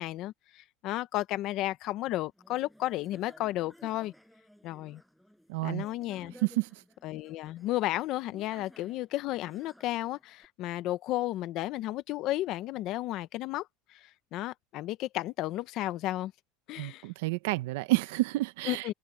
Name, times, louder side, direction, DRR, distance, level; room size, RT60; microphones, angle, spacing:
voice 1, 0.0-4.1 4.6-5.0 5.6-6.3 7.0-13.7 13.9-16.3 16.7-17.0 18.7-18.9, left 15 dB, 40° left, 0.9 m, -33 dB
sound 1, 2.4-10.5, equal, ahead, 7.2 m, -57 dB
voice 2, 5.5-5.9 6.4-6.7 16.8-18.9, right 19 dB, 70° right, 1.0 m, -29 dB
supercardioid pair, 170°, 0 cm